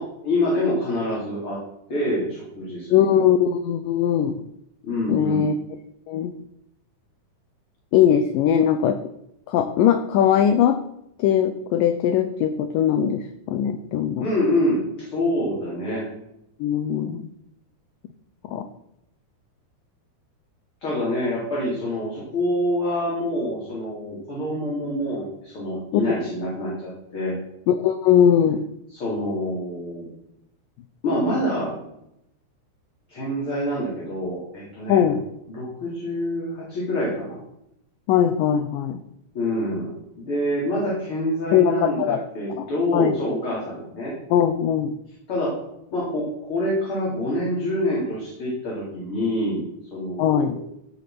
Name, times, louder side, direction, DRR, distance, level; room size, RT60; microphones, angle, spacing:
voice 1, 0.0-1.6 1.9-3.2 4.8-5.5 14.2-16.1 20.8-27.4 28.9-30.1 31.0-31.8 33.1-35.0 35.5-37.4 39.3-44.1 45.3-45.6 45.9-50.6, left 1 dB, 30° left, -7 dB, 4.3 m, -26 dB
voice 2, 2.9-4.3 5.1-5.5 6.1-6.3 7.9-9.0 9.5-10.8 11.2-14.3 16.6-17.3 18.5-18.7 25.9-26.2 27.7-28.7 34.9-35.2 38.1-39.0 41.5-42.2 42.6-42.7 42.9-43.2 44.3-45.0 50.2-50.6, left 9 dB, 90° left, 9 dB, 1.9 m, -20 dB
17.0 x 6.9 x 6.0 m, 0.83 s
omnidirectional pair, 4.8 m